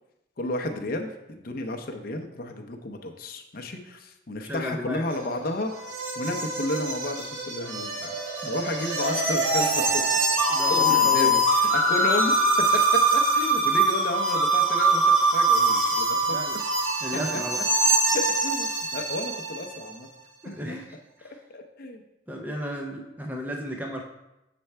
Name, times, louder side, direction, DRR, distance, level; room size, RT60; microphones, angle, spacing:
voice 1, 0.4-5.7 6.2-8.2 8.5-12.4 12.7-16.3 17.3-17.4 18.1-20.1 20.5-20.8 21.5-22.0, left 2 dB, 45° left, 4 dB, 0.6 m, -32 dB
voice 2, 4.4-5.0 8.4-8.5 10.5-11.4 16.3-16.5 17.0-17.6 20.4-20.9 21.2-21.4 22.3-24.0, equal, 10° right, 1 dB, 0.4 m, -34 dB
sound 1, 5.1-19.7, right 2 dB, 80° right, 1.2 m, -23 dB
6.9 x 3.3 x 4.4 m, 0.93 s
head